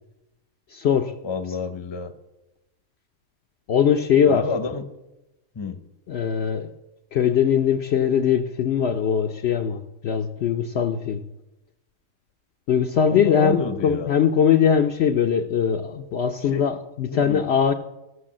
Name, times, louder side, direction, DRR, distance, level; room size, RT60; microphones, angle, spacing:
voice 1, 0.7-1.1 3.7-4.5 6.1-6.7 7.1-11.2 12.7-17.7, left 8 dB, 60° left, 0.8 m, -21 dB
voice 2, 1.2-2.1 4.3-4.9 5.5-5.8 13.1-14.1 16.5-16.7 17.1-17.4, left 5 dB, 25° left, 0.7 m, -29 dB
14.5 x 6.5 x 7.4 m
omnidirectional pair, 1.4 m